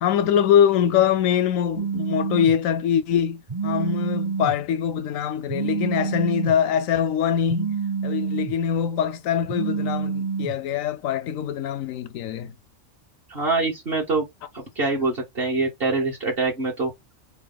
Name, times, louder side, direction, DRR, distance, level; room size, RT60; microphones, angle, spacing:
voice 1, 0.0-7.8 8.0-12.5, left 8 dB, 80° left, 1.1 m, -23 dB
Telephone, 1.8-2.5 3.5-4.5 5.5-6.5 7.5-8.5 9.5-10.5, right 5 dB, 25° right, 0.5 m, -27 dB
voice 2, 13.3-14.3 14.5-16.9, right 3 dB, 45° right, 1.5 m, -24 dB
3.5 x 3.5 x 3.9 m
omnidirectional pair, 1.4 m